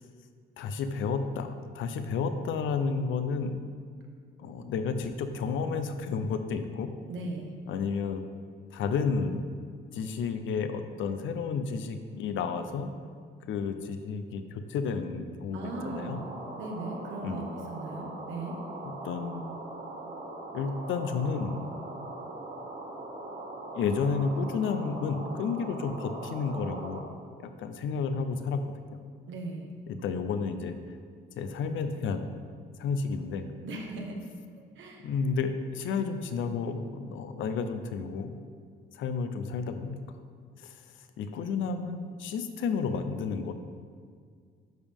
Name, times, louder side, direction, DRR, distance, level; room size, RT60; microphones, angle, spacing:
voice 1, 0.6-3.6 4.4-6.9 7.7-8.2 8.7-9.5 9.9-12.9 13.5-16.2 17.2-17.5 18.8-19.5 20.5-21.6 23.7-27.0 27.4-28.6 28.9-29.0 29.9-30.8 31.4-32.4 32.8-33.4 35.0-38.3 38.9-40.0 40.6-40.8 41.2-43.5, left 5 dB, 80° left, 8 dB, 0.7 m, -31 dB
voice 2, 7.1-7.5 15.5-16.2 16.6-18.5 29.3-29.7 33.6-34.3 34.7-35.1, right 2 dB, 75° right, 1 dB, 1.3 m, -38 dB
sound 1, 15.6-27.0, right 2 dB, 50° right, 2.3 m, -41 dB
12.0 x 5.0 x 3.6 m, 2.1 s
cardioid pair, 90°, 20 cm